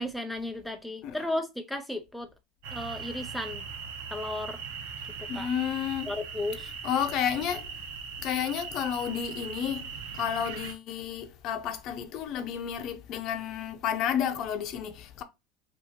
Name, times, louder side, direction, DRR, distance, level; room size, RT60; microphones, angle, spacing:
voice 1, 0.0-2.3 2.7-3.6 4.1-4.6 5.4-5.5 6.1-6.7, left 1 dB, ahead, 0.3 m, -34 dB
sound 1, 2.6-10.7, right 6 dB, 85° right, 1.1 m, -40 dB
voice 2, 5.3-6.1 6.8-7.7 8.2-9.9 10.1-15.2, left 9 dB, 45° left, 0.6 m, -31 dB
5.6 x 2.6 x 2.9 m
cardioid pair, 155°, 0 cm